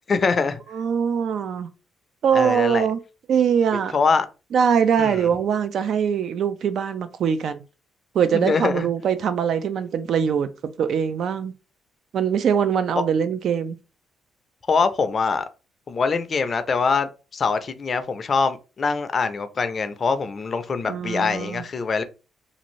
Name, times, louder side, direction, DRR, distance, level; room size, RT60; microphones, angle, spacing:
voice 1, 0.1-0.6 2.3-2.9 3.9-4.3 5.0-5.3 8.3-8.9 14.7-15.5 15.9-22.0, left 5 dB, 40° left, 0.4 m, -23 dB
voice 2, 0.7-1.7 2.2-3.0 3.3-4.0 4.5-7.6 8.1-10.5 10.8-11.5 12.1-13.8 20.8-21.6, right 7 dB, 65° right, 0.4 m, -22 dB
2.6 x 2.5 x 3.0 m
cardioid pair, 90°, 0 cm